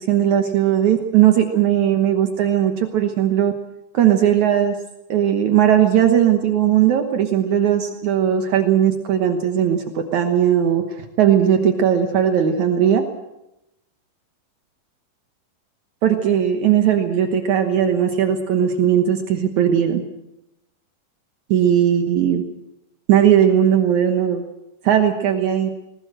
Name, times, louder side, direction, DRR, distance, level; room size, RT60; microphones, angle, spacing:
voice 1, 0.1-3.5 3.9-4.8 5.1-13.0 16.0-20.0 21.5-22.4 23.1-24.4 24.8-25.7, right 9 dB, 80° right, 6 dB, 1.6 m, -18 dB
20.0 x 19.0 x 7.7 m, 0.91 s
omnidirectional pair, 5.3 m